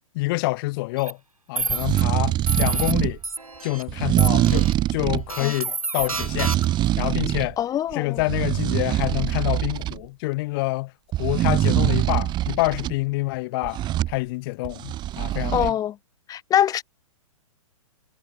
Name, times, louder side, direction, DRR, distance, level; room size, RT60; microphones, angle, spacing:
voice 1, 0.1-1.2 1.5-3.2 3.6-6.5 7.0-7.6 7.9-10.9 11.2-13.8 14.1-15.7, left 23 dB, 40° left, 2.6 m, -27 dB
sound 1, 1.0-1.1 1.6-2.0 2.5-2.9 3.2-3.8 4.2-4.7 5.3-6.9, right 3 dB, 90° right, 2.3 m, -29 dB
sound 2, 1.6-3.2 3.9-5.3 6.0-7.5 7.9-10.0 11.1-12.9 13.6-14.2 14.6-15.7, right 14 dB, 25° right, 2.2 m, -23 dB
voice 2, 7.6-8.2 15.5-16.0 16.3-16.8, left 11 dB, 20° left, 1.7 m, -23 dB
figure-of-eight pair, 115°, 18 cm